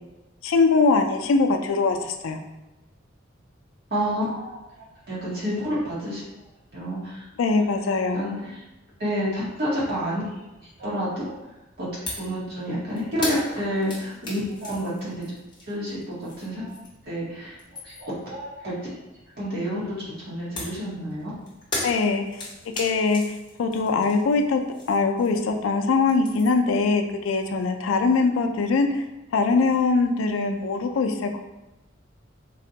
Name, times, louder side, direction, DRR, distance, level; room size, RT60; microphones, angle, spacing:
voice 1, 0.4-2.4 7.4-8.3 21.8-22.5 22.8-24.6 24.9-29.0 29.3-31.4, left 4 dB, 85° left, 5 dB, 0.4 m, -22 dB
voice 2, 3.9-4.6 5.1-6.2 6.7-7.2 8.1-8.5 9.0-10.2 10.8-11.3 11.8-11.9 12.2-15.1 15.7-16.7 17.1-17.5 17.8-18.7 19.4-19.8 20.1-21.3, equal, 50° right, -7 dB, 1.0 m, -29 dB
sound 1, 12.1-12.3 12.6-17.1 17.4-18.2 20.6-25.7 25.9-26.7, left 1 dB, 25° left, 0.9 m, -36 dB
3.9 x 2.1 x 2.7 m, 1.0 s
head